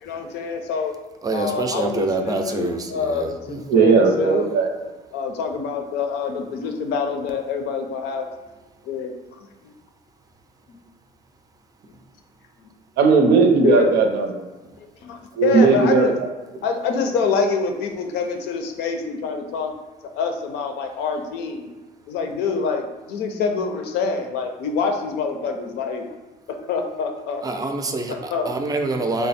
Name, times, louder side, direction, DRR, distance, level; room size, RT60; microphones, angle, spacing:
voice 1, 0.0-0.9 1.3-4.5 5.1-8.3 8.8-9.1 9.6-9.7 10.7-10.8 13.6-13.9 15.0-16.1 16.6-19.7 20.1-21.7 22.1-26.0 26.5-27.4 28.1-28.5, left 5 dB, 85° left, 4 dB, 0.5 m, -25 dB
voice 2, 1.2-3.6 27.4-28.1 28.5-29.3, right 2 dB, 20° right, 5 dB, 0.4 m, -25 dB
voice 3, 3.7-4.7 13.0-14.5 15.4-16.1, right 5 dB, 80° right, 4 dB, 0.6 m, -17 dB
3.4 x 2.0 x 4.1 m, 1.2 s
cardioid pair, 110°, 17 cm